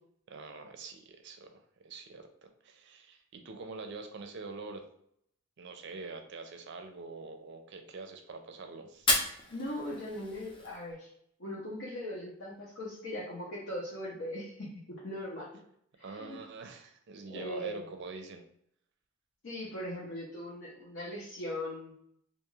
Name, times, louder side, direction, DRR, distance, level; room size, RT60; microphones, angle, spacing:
voice 1, 0.3-4.9 5.6-9.2 16.0-18.4, right 3 dB, 60° right, 6 dB, 0.4 m, -45 dB
Fire, 8.9-10.9, left 2 dB, 25° left, 0.5 m, -33 dB
voice 2, 9.5-11.1 11.4-15.5 16.0-16.4 17.3-17.9 19.4-21.9, left 1 dB, 75° left, -6 dB, 0.7 m, -39 dB
2.5 x 2.4 x 3.0 m, 0.70 s
head